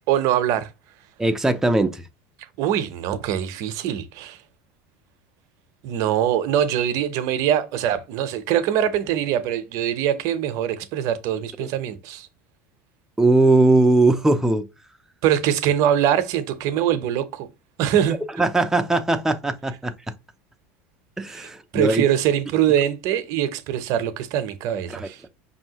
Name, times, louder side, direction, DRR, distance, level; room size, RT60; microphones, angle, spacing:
voice 1, 0.1-0.7 2.6-4.4 5.8-12.3 15.2-17.5 17.8-18.2 21.3-25.2, right 10 dB, 60° right, 0.6 m, -23 dB
voice 2, 1.2-2.1 13.2-14.7 18.1-19.9 21.2-22.0 24.9-25.1, right 2 dB, 5° right, 0.4 m, -19 dB
5.4 x 2.7 x 2.8 m
supercardioid pair, 105°, 6 cm